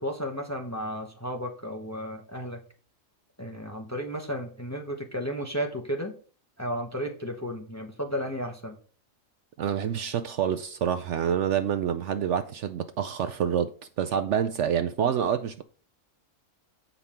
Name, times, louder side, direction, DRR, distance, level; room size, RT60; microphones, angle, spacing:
voice 1, 0.0-2.6 3.4-6.1 6.6-8.8, equal, 15° left, 0.9 m, -33 dB
voice 2, 9.6-15.6, right 8 dB, 65° right, 0.8 m, -27 dB
8.2 x 5.3 x 4.3 m
omnidirectional pair, 1.5 m